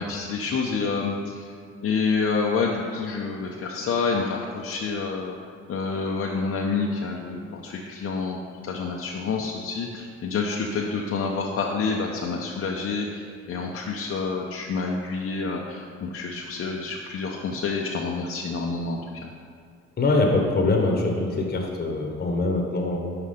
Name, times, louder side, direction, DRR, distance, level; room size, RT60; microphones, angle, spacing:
voice 1, 0.0-1.5 1.8-5.4 5.7-8.4 8.6-19.0, left 4 dB, 50° left, -1 dB, 0.6 m, -28 dB
voice 2, 20.0-23.0, left 2 dB, 30° left, 1 dB, 1.0 m, -23 dB
5.7 x 4.9 x 5.0 m, 2.1 s
cardioid pair, 90°, 30 cm